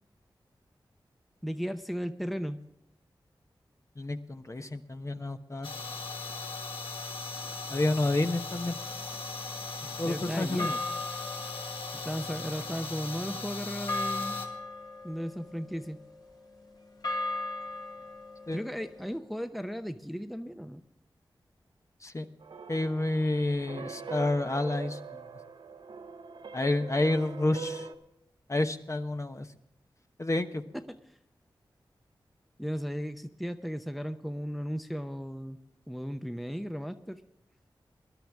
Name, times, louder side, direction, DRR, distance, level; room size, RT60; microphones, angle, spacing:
voice 1, 1.4-2.6 10.0-10.8 11.9-14.4 15.0-16.0 18.5-20.8 30.9-31.0 32.6-35.6 35.9-37.2, equal, ahead, 8 dB, 0.7 m, -35 dB
voice 2, 4.0-5.7 7.7-8.8 10.0-10.7 18.5-18.6 22.0-22.3 22.7-25.2 26.5-27.9 28.5-29.5 30.2-30.6, left 2 dB, 35° left, 7 dB, 1.0 m, -29 dB
sound 1, 5.6-14.5, left 3 dB, 90° left, 1.7 m, -38 dB
sound 2, 8.8-10.1 10.6-19.2, left 2 dB, 55° left, 1.9 m, -39 dB
sound 3, 22.4-27.9, right 4 dB, 80° right, 1.0 m, -42 dB
20.0 x 11.5 x 3.5 m, 0.80 s
cardioid pair, 50°, 9 cm